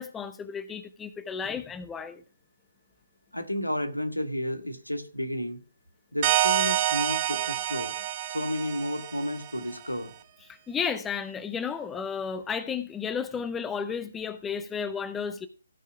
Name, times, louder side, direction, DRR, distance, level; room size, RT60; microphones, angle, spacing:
voice 1, 0.0-2.2 10.5-15.5, left 6 dB, 10° left, 0.6 m, -33 dB
voice 2, 3.3-5.6 6.1-7.9 8.3-10.1, left 1 dB, 85° left, 1.9 m, -32 dB
sound 1, 6.2-9.6, right 12 dB, 30° right, 0.9 m, -27 dB
16.0 x 5.5 x 4.7 m
figure-of-eight pair, 140°, 0 cm